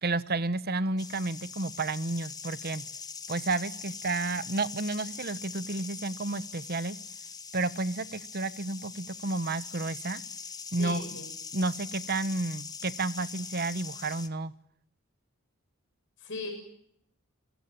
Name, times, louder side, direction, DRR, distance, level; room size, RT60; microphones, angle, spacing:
voice 1, 0.0-2.8 3.3-7.0 7.5-10.2 10.7-11.0 11.5-14.5, right 3 dB, 45° right, 15 dB, 1.1 m, -31 dB
sound 1, 1.0-14.3, left 5 dB, 20° left, 1.5 m, -42 dB
voice 2, 10.8-11.3 16.2-16.5, left 3 dB, 60° left, 3 dB, 7.3 m, -38 dB
26.5 x 18.5 x 8.9 m, 0.71 s
head